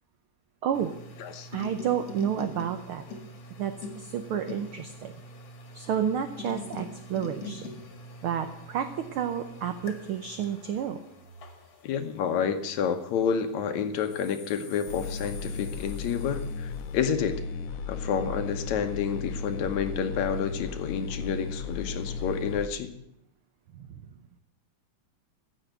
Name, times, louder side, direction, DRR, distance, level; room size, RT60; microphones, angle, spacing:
sound 1, 0.7-13.4 13.9-16.8, left 2 dB, 50° left, 2.7 m, -44 dB
voice 1, 1.5-3.0 3.6-5.1 5.7-7.7 8.2-11.0 23.7-24.0, right 9 dB, 85° right, 8 dB, 1.2 m, -30 dB
voice 2, 11.8-17.4 17.9-23.0, left 7 dB, 70° left, 8 dB, 2.3 m, -29 dB
sound 2, 14.9-22.7, left 5 dB, 90° left, 2.4 m, -35 dB
15.5 x 6.4 x 9.1 m, 0.79 s
omnidirectional pair, 3.4 m